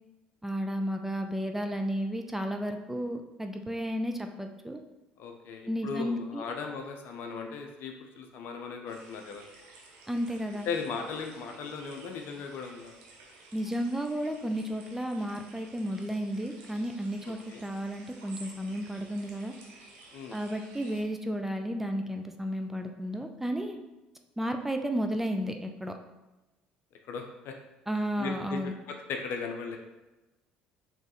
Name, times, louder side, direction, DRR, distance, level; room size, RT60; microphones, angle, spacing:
voice 1, 0.4-4.8 5.7-6.4 10.1-10.7 13.5-19.5 20.3-23.8 24.4-25.9 27.9-28.7, equal, 5° right, 5 dB, 0.4 m, -33 dB
voice 2, 5.2-9.4 10.7-12.9 17.5-17.6 20.1-20.4 27.1-27.6 28.2-28.6 28.9-29.8, left 5 dB, 60° left, 4 dB, 0.5 m, -37 dB
sound 1, 8.9-21.0, right 3 dB, 75° right, 0.9 m, -53 dB
4.3 x 3.2 x 3.0 m, 1.1 s
hypercardioid pair, 65°, 4 cm